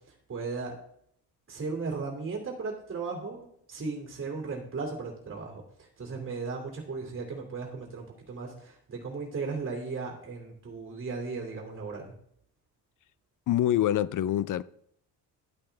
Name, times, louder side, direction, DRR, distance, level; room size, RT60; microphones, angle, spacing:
voice 1, 0.1-0.7 1.5-12.1, right 4 dB, 30° right, 2.6 m, -36 dB
voice 2, 13.5-14.6, left 12 dB, 50° left, 0.5 m, -25 dB
11.5 x 8.5 x 3.4 m
cardioid pair, 100°, 40 cm